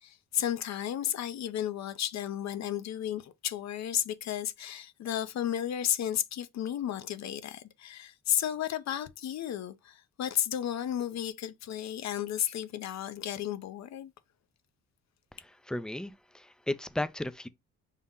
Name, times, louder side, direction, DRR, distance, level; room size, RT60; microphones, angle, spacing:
voice 1, 0.0-14.1, left 10 dB, 65° left, 0.6 m, -33 dB
voice 2, 15.4-17.5, left 1 dB, 5° left, 0.4 m, -35 dB
5.5 x 2.1 x 3.6 m
cardioid pair, 90°, 30 cm